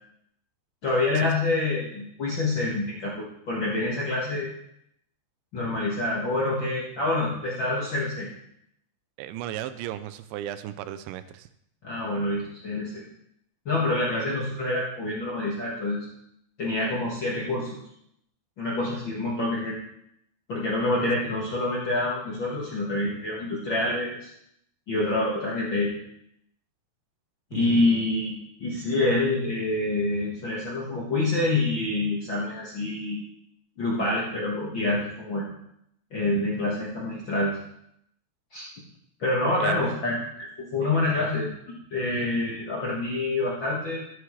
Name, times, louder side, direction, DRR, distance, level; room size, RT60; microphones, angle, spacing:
voice 1, 0.8-4.5 5.5-8.3 11.8-13.0 13.6-16.0 16.6-17.7 18.6-19.8 20.5-24.3 24.9-25.9 27.5-33.2 33.8-35.5 36.1-37.6 38.5-38.6 39.2-41.5 41.9-44.1, left 2 dB, 80° left, -5 dB, 1.0 m, -27 dB
voice 2, 9.2-11.5 21.0-21.2 27.5-28.0 39.6-40.2 40.8-41.0, right 12 dB, 90° right, 11 dB, 3.0 m, -36 dB
12.5 x 9.5 x 3.2 m, 0.75 s
omnidirectional pair, 5.1 m